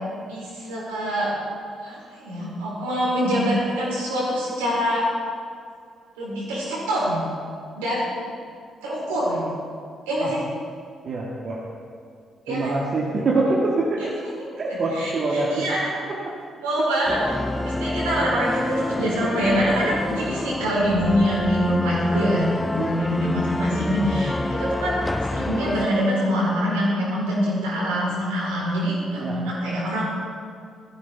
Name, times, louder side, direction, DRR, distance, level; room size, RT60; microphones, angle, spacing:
voice 1, 0.1-1.3 1.8-5.0 6.2-7.2 7.8-8.0 8.8-9.5 10.1-10.4 12.5-12.7 14.7-16.0 16.6-17.2 17.6-25.0 25.3-30.0, equal, 70° right, -6 dB, 4.5 m, -25 dB
voice 2, 11.0-11.6 12.5-14.1 14.6-15.7 16.1-16.2 22.8-22.9 24.3-24.4 29.2-29.4, right 2 dB, 45° right, -4 dB, 1.9 m, -25 dB
sound 1, 17.1-25.9, left 2 dB, 15° left, 0.4 m, -27 dB
17.0 x 14.5 x 3.6 m, 2.2 s
figure-of-eight pair, 40°, 0 cm